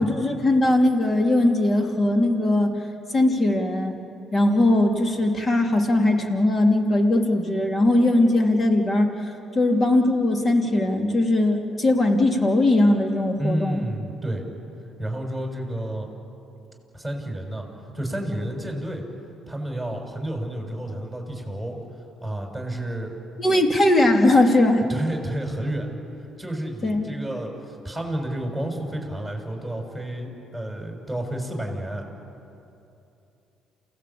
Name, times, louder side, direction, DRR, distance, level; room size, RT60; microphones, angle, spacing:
voice 1, 0.0-2.7 3.1-4.0 4.3-13.8 23.4-24.9 26.8-27.1, left 1 dB, 35° left, 4 dB, 3.1 m, -20 dB
voice 2, 13.4-14.4 15.0-16.1 16.9-17.6 17.9-19.0 19.5-21.8 22.2-23.1 24.9-25.9 26.4-32.0, right 1 dB, 5° left, 1 dB, 6.5 m, -30 dB
28.5 x 16.5 x 8.6 m, 2.8 s
supercardioid pair, 60°, 0 cm